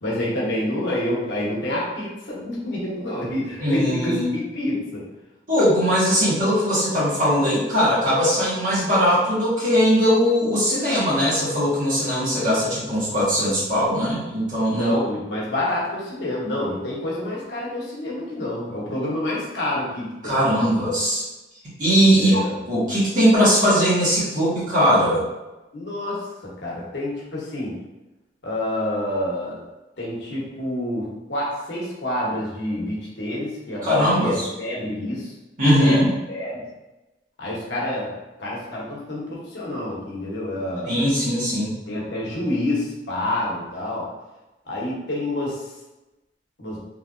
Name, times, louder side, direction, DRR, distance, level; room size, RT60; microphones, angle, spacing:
voice 1, 0.0-5.0 14.7-20.7 22.1-22.5 25.7-27.8 28.4-29.6 30.0-35.3 35.8-36.6 37.4-41.1 41.9-44.1 44.7-45.6 46.6-46.8, left 1 dB, 80° left, -5 dB, 1.0 m, -28 dB
voice 2, 3.6-4.3 5.5-15.0 20.2-21.2 21.8-22.4 22.7-25.2 33.8-34.5 35.6-36.1 40.8-41.7, equal, 45° right, -9 dB, 1.4 m, -20 dB
3.1 x 2.8 x 2.6 m, 1.0 s
head